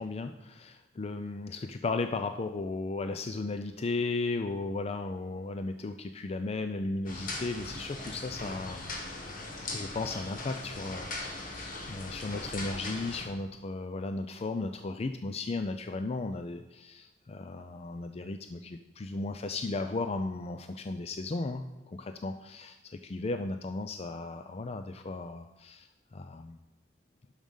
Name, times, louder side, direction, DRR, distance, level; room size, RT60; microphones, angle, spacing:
voice 1, 0.0-8.9 9.7-26.6, left 3 dB, 35° left, 8 dB, 0.4 m, -35 dB
sound 1, 7.1-13.2, left 2 dB, 50° left, 1.9 m, -39 dB
11.0 x 6.5 x 5.5 m, 1.1 s
head